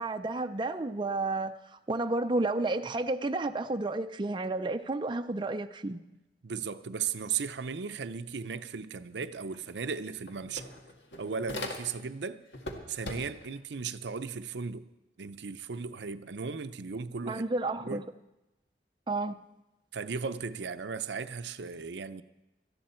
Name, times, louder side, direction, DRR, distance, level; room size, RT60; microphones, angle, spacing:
voice 1, 0.0-6.0 17.3-18.1 19.1-19.5, right 2 dB, 25° right, 0.5 m, -31 dB
voice 2, 6.4-10.7 11.2-12.4 12.9-14.9 15.2-17.4 17.8-18.0 19.9-22.2, right 5 dB, 75° right, 0.6 m, -36 dB
sound 1, 9.5-9.6 9.9-12.2 12.5-13.6, left 1 dB, 85° left, 1.9 m, -40 dB
18.0 x 13.5 x 4.4 m
head